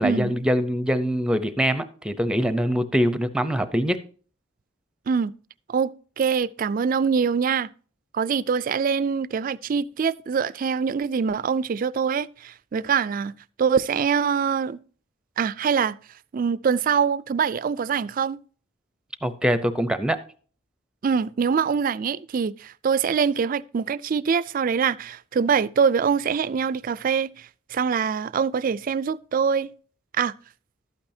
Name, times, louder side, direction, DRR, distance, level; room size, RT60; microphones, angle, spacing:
voice 1, 0.0-4.0 19.2-20.2, equal, 5° right, 0.6 m, -23 dB
voice 2, 5.7-7.7 8.1-13.3 13.6-14.8 15.4-16.0 16.3-18.4 21.0-29.7 30.2-30.3, right 6 dB, 45° right, 0.3 m, -24 dB
12.0 x 8.8 x 2.7 m
head